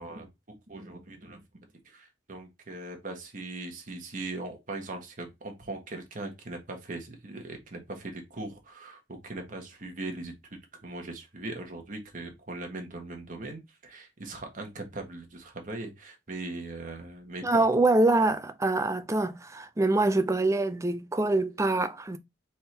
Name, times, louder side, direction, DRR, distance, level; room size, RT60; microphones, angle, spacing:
voice 1, 0.0-1.4 1.8-17.6, right 2 dB, 45° right, 1.2 m, -40 dB
voice 2, 17.4-22.2, right 2 dB, 15° right, 0.4 m, -25 dB
4.3 x 3.5 x 3.3 m
head